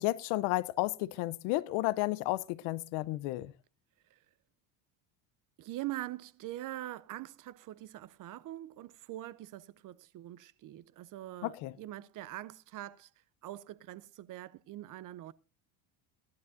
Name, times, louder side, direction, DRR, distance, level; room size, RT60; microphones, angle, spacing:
voice 1, 0.0-3.5 11.4-11.7, left 18 dB, 70° left, 0.8 m, -32 dB
voice 2, 5.6-13.1 13.4-15.3, right 15 dB, 40° right, 0.6 m, -43 dB
17.5 x 11.5 x 2.6 m
supercardioid pair, 125°, 48 cm